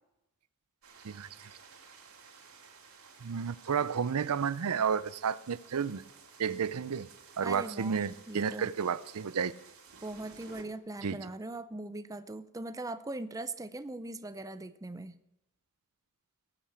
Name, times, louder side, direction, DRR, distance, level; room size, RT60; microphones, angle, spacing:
sound 1, 0.8-10.6, right 5 dB, 75° right, 2.8 m, -55 dB
voice 1, 3.2-6.0 6.4-7.1 7.4-9.5 11.0-11.3, right 6 dB, 90° right, 0.5 m, -31 dB
voice 2, 7.4-8.7 10.0-15.2, right 2 dB, 15° right, 0.5 m, -40 dB
17.5 x 8.9 x 6.8 m
head